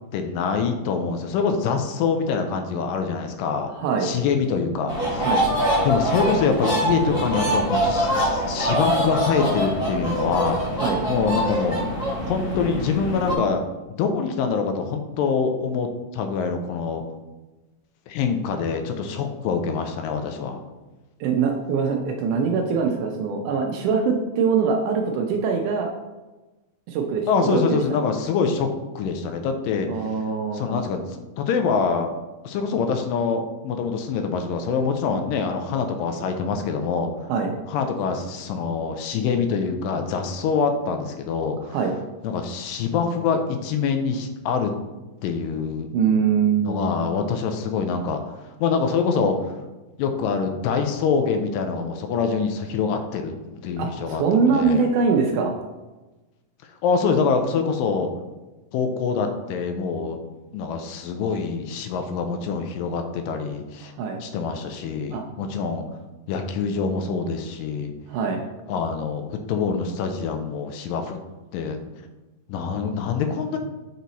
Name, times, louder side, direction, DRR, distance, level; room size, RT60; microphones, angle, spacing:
voice 1, 0.1-3.7 4.0-5.3 5.8-10.6 11.1-11.8 12.3-13.6 13.9-17.0 18.1-20.6 27.3-29.9 30.5-31.0 31.4-32.1 32.5-37.1 37.7-41.8 42.2-44.7 45.2-45.9 46.7-48.2 48.6-49.4 50.0-54.9 56.8-58.1 58.7-60.2 60.5-63.9 64.2-65.9 66.3-67.9 68.7-71.2 71.5-71.8 72.5-73.6, left 5 dB, 85° left, 6 dB, 2.2 m, -25 dB
voice 2, 3.8-4.1 5.2-5.5 10.8-11.0 21.2-25.9 26.9-27.8 29.9-30.8 37.3-37.5 41.6-41.9 45.9-46.9 53.8-55.5 64.0-64.2 65.1-65.2 68.1-68.4, right 5 dB, 80° right, 2 dB, 1.9 m, -23 dB
sound 1, 4.9-13.4, equal, 35° left, 1.3 m, -24 dB
6.3 x 4.0 x 4.0 m, 1.1 s
omnidirectional pair, 4.0 m